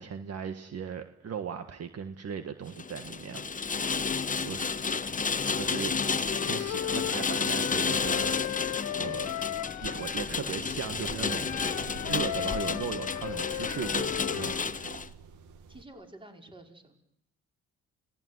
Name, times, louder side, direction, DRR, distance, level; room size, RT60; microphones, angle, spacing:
voice 1, 0.0-3.5 4.4-4.7 5.6-6.0 6.4-8.4 9.0-9.5 9.8-15.1, right 7 dB, 55° right, 8 dB, 1.6 m, -38 dB
Rain, 2.7-15.1, left 5 dB, 25° left, 1.0 m, -31 dB
Wind instrument woodwind instrument, 6.2-10.3 11.2-14.6, left 13 dB, 75° left, 1.2 m, -36 dB
sound 1, 10.5-15.8, right 5 dB, 90° right, 2.4 m, -48 dB
voice 2, 15.7-16.9, right 1 dB, 15° right, 3 dB, 4.9 m, -50 dB
28.5 x 18.5 x 9.6 m, 0.78 s
cardioid pair, 90°, 30 cm